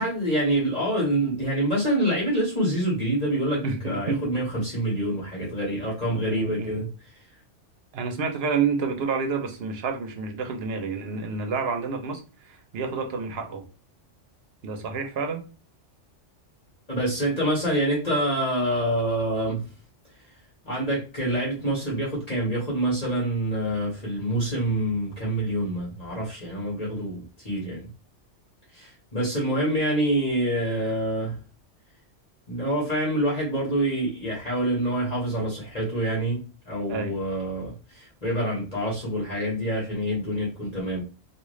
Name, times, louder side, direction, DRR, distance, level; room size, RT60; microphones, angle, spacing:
voice 1, 0.0-6.9 16.9-19.6 20.6-27.8 28.7-31.3 32.5-41.0, right 1 dB, 35° left, -5 dB, 1.7 m, -26 dB
voice 2, 3.6-4.2 6.1-6.8 7.9-13.6 14.6-15.4 36.9-37.1, right 5 dB, 60° right, 6 dB, 0.9 m, -29 dB
3.6 x 2.6 x 3.1 m, 0.33 s
omnidirectional pair, 1.2 m